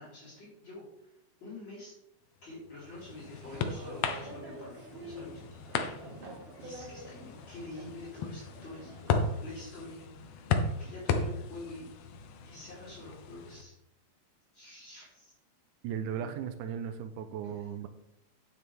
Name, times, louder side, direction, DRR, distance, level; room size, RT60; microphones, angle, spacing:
voice 1, 0.0-1.9 2.4-6.1 6.6-8.9 9.4-10.1 10.8-11.9 12.4-13.7 14.5-15.3 16.1-16.4 17.5-17.6, left 2 dB, 35° left, -9 dB, 4.6 m, -47 dB
sound 1, 2.5-13.6, left 5 dB, 70° left, 1.4 m, -36 dB
sound 2, 2.8-9.4, right 1 dB, 55° right, 2.7 m, -48 dB
voice 2, 15.8-17.9, right 8 dB, 85° right, 9 dB, 2.1 m, -36 dB
9.5 x 8.4 x 3.5 m, 0.82 s
omnidirectional pair, 3.5 m